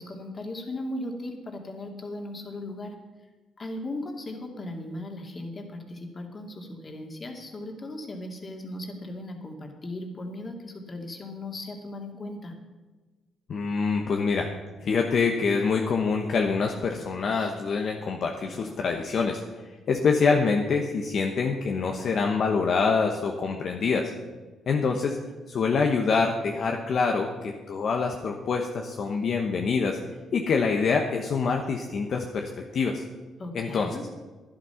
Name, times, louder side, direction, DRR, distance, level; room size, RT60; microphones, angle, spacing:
voice 1, 0.0-2.9 3.6-12.5 33.4-34.0, left 1 dB, 35° left, 2 dB, 2.5 m, -37 dB
voice 2, 13.5-14.5 14.8-19.4 19.9-24.1 24.7-25.2 25.5-30.0 30.3-33.0 33.5-34.0, left 5 dB, 55° left, 2 dB, 1.1 m, -25 dB
11.5 x 11.0 x 5.8 m, 1.3 s
cardioid pair, 90°, 0 cm